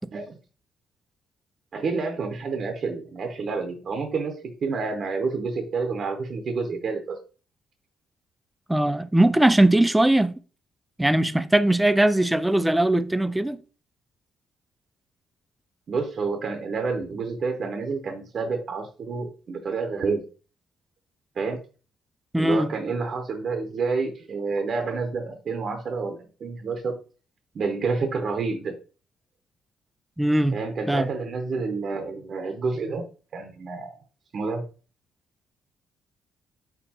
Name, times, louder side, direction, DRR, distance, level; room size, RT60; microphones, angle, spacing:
voice 1, 1.7-7.2 15.9-20.3 21.4-21.6 22.4-27.0 27.5-28.7 30.5-33.0 33.3-34.0 34.3-34.7, right 4 dB, 55° right, 0.7 m, -29 dB
voice 2, 8.7-10.3 11.0-13.6 22.3-22.7 30.2-30.6 30.9-31.1, right 1 dB, 10° right, 0.3 m, -20 dB
4.4 x 3.8 x 2.8 m
cardioid pair, 90°, 0 cm